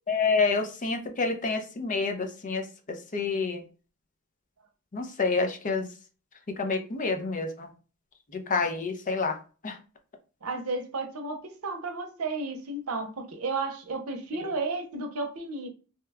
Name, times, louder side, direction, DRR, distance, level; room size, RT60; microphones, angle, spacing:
voice 1, 0.1-3.6 4.9-5.9 6.5-7.7 8.3-9.4 9.6-9.8 14.3-14.5, left 4 dB, 35° left, 0.5 m, -28 dB
voice 2, 10.4-15.7, right 3 dB, 85° right, 0.7 m, -33 dB
2.8 x 2.2 x 3.4 m
head